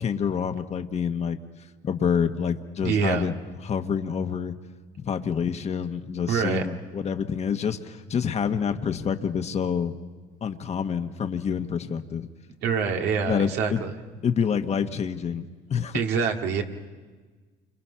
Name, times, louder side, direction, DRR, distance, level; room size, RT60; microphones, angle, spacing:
voice 1, 0.0-1.4 1.8-3.4 3.6-4.5 5.0-9.9 10.4-12.3 13.2-13.8 14.2-15.4 15.7-16.0, left 7 dB, 40° left, 7 dB, 1.2 m, -27 dB
voice 2, 2.8-3.3 6.3-6.6 12.6-13.9 15.9-16.6, right 6 dB, 85° right, 3 dB, 2.1 m, -25 dB
28.5 x 26.0 x 5.7 m, 1.4 s
cardioid pair, 110°, 17 cm